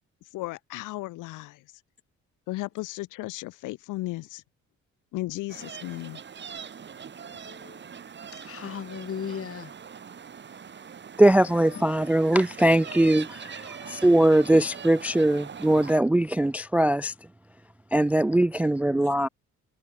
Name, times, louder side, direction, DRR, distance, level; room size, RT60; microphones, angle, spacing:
voice 1, 0.2-1.6 2.5-4.4 5.1-6.2, left 19 dB, 85° left, 0.6 m, -35 dB
sound 1, 5.5-16.0, right 7 dB, 35° right, 1.3 m, -42 dB
voice 2, 7.4-7.8 8.3-9.7 11.7-11.9 14.5-14.6 19.0-19.2, left 7 dB, 45° left, 2.9 m, -37 dB
voice 3, 11.2-17.1 17.9-19.3, right 1 dB, 5° right, 0.3 m, -21 dB
cardioid pair, 90°, 30 cm